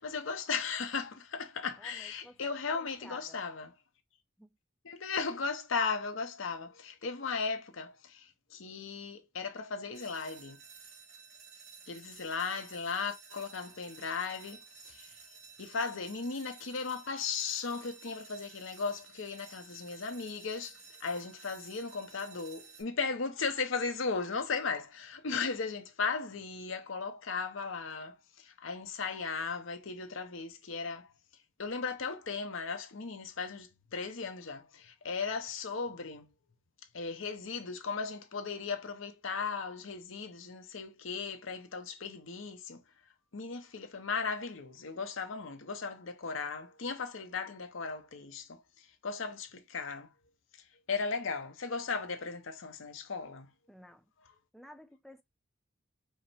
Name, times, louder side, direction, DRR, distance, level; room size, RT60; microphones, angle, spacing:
voice 1, 0.0-3.7 4.8-10.6 11.9-15.2 15.6-31.1 31.6-36.3 36.9-42.8 43.3-50.1 50.9-53.5, left 5 dB, 80° left, 0.8 m, -36 dB
voice 2, 1.8-3.4 4.4-4.5 53.7-54.0 54.5-55.2, equal, ahead, 0.5 m, -53 dB
sound 1, 9.9-22.8, right 5 dB, 80° right, 1.9 m, -53 dB
4.8 x 2.1 x 4.1 m
head